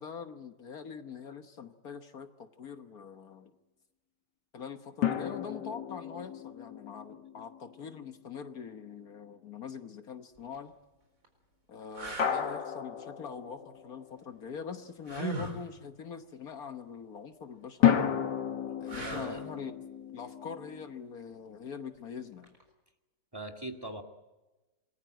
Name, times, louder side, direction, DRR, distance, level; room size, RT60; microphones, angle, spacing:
voice 1, 0.0-3.5 4.5-10.7 11.7-18.2 18.8-19.7 20.1-22.6, left 6 dB, 60° left, 7 dB, 1.6 m, -43 dB
sound 1, 5.0-8.4 12.2-14.2 17.8-20.9, left 9 dB, 80° left, 2.0 m, -32 dB
sound 2, 10.4-10.6 11.2-11.3 11.9-12.4 15.1-15.6 18.9-19.5 22.4-22.6, right 2 dB, 50° right, 4.8 m, -38 dB
voice 2, 19.0-19.4 23.3-24.0, right 1 dB, 15° right, 6 dB, 2.0 m, -40 dB
27.5 x 20.5 x 9.0 m, 1.1 s
omnidirectional pair, 1.8 m